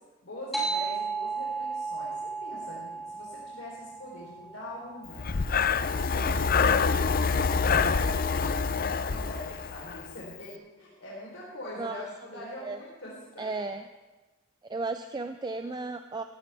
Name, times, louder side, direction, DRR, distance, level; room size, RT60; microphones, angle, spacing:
voice 1, 0.2-5.3 5.8-8.4 9.0-13.4, left 1 dB, 80° left, -5 dB, 3.7 m, -43 dB
sound 1, 0.5-5.5, right 4 dB, ahead, 2.8 m, -35 dB
Breathing, 5.2-10.1, left 5 dB, 45° left, 0.5 m, -26 dB
voice 2, 12.3-12.8 13.4-13.8 14.7-16.2, right 3 dB, 20° right, 8 dB, 0.4 m, -34 dB
16.5 x 15.5 x 3.5 m, 1.2 s
head